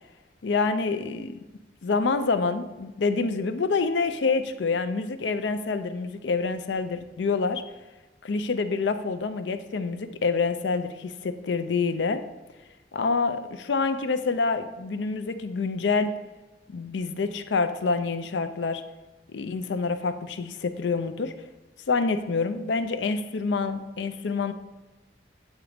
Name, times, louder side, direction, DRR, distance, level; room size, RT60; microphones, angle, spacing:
voice 1, 0.4-1.3 1.8-7.6 8.2-12.2 12.9-16.1 16.7-18.8 19.3-21.3 21.9-24.5, left 4 dB, 85° left, 10 dB, 0.5 m, -27 dB
8.1 x 3.0 x 5.0 m, 1.1 s
head